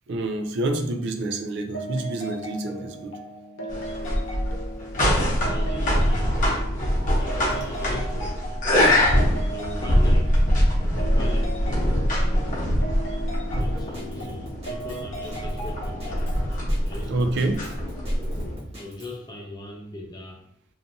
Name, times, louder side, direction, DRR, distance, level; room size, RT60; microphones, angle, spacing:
voice 1, 0.1-3.2 17.1-17.6, right 2 dB, 65° right, 7 dB, 0.4 m, -27 dB
sound 1, 1.7-16.5, right 1 dB, 85° left, 0.6 m, -37 dB
sound 2, 3.7-18.6, equal, 45° left, 0.8 m, -23 dB
voice 2, 5.0-6.4 7.2-8.4 9.5-10.5 11.0-12.5 13.6-16.3 16.8-17.5 18.8-20.4, left 1 dB, 20° left, 0 dB, 0.4 m, -39 dB
Drum kit, 13.6-19.1, equal, 30° right, 0.9 m, -41 dB
2.6 x 2.4 x 2.6 m, 0.74 s
head